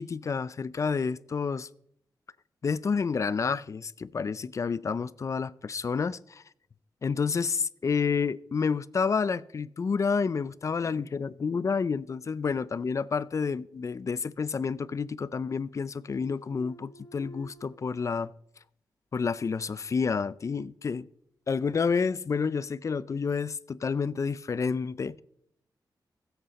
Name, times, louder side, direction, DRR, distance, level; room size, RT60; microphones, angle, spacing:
voice 1, 0.0-1.7 2.6-6.4 7.0-18.3 19.1-21.1 21.5-25.2, left 5 dB, 45° left, 0.4 m, -29 dB
sound 1, 16.1-17.7, right 1 dB, 60° left, 1.5 m, -52 dB
21.5 x 8.1 x 4.1 m
wide cardioid pair, 130°, 8 cm